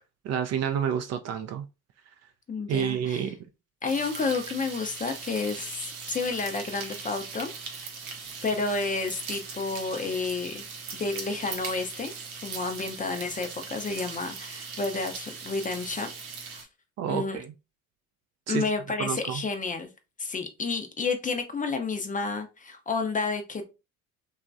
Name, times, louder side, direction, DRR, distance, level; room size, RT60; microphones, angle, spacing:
voice 1, 0.2-1.7 2.7-3.4 17.0-17.5 18.5-18.6 19.0-19.4, right 9 dB, 40° right, 0.4 m, -29 dB
voice 2, 2.5-3.3 3.8-7.5 8.4-10.6 10.9-12.1 12.4-16.1 16.5-16.7 17.1-17.4 18.5-19.9 20.2-23.7, left 4 dB, 20° left, 0.5 m, -30 dB
sound 1, 3.9-16.6, right 5 dB, 90° right, 0.7 m, -40 dB
3.0 x 2.3 x 2.5 m
hypercardioid pair, 65°, 42 cm